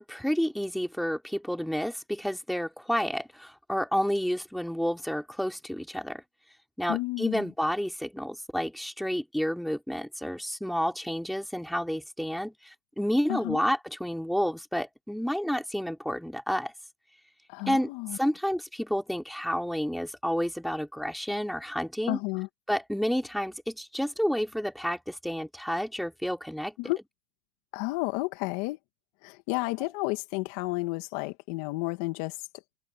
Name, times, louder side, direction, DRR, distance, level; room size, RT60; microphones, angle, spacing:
voice 1, 0.0-6.2 6.8-16.7 17.7-22.2 22.7-26.9, equal, ahead, 3.7 m, -30 dB
voice 2, 6.9-7.4 13.3-13.6 17.5-18.2 22.1-22.5 26.8-27.0 27.7-28.8 29.2-32.4, left 23 dB, 65° left, 1.9 m, -31 dB
hypercardioid pair, 110°, 0 cm